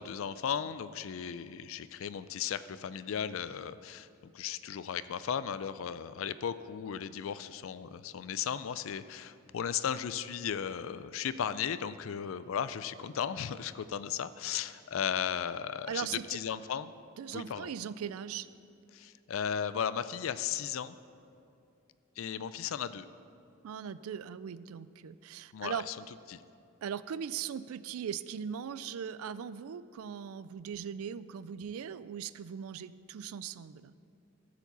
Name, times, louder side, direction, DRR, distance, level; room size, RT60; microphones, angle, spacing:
voice 1, 0.0-16.9 17.3-17.7 18.9-21.0 22.2-23.1 25.5-25.9 26.3-26.4, left 8 dB, 70° left, 14 dB, 0.4 m, -36 dB
voice 2, 15.9-16.4 17.2-18.5 23.6-25.9 26.8-33.9, right 8 dB, 90° right, 16 dB, 0.4 m, -39 dB
13.0 x 5.0 x 6.8 m, 2.6 s
head